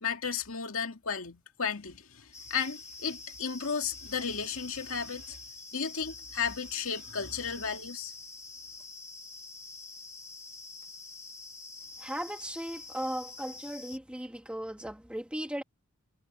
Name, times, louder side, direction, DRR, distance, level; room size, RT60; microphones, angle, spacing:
voice 1, 0.0-5.4 5.7-8.1, left 6 dB, 90° left, 2.3 m, -34 dB
sound 1, 2.3-14.0, left 3 dB, 15° left, 1.4 m, -46 dB
voice 2, 12.0-15.6, right 1 dB, 5° right, 2.2 m, -37 dB
head